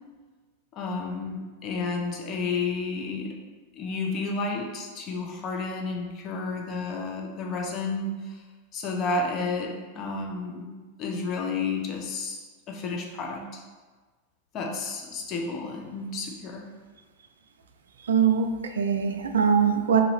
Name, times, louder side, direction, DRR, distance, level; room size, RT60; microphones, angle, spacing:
voice 1, 0.7-3.4 3.7-8.4 8.7-10.7 11.0-13.6 14.5-16.6, left 3 dB, 40° left, 1 dB, 0.9 m, -31 dB
voice 2, 18.0-20.0, right 7 dB, 85° right, 5 dB, 0.4 m, -22 dB
4.0 x 2.7 x 4.8 m, 1.3 s
hypercardioid pair, 105°, 0 cm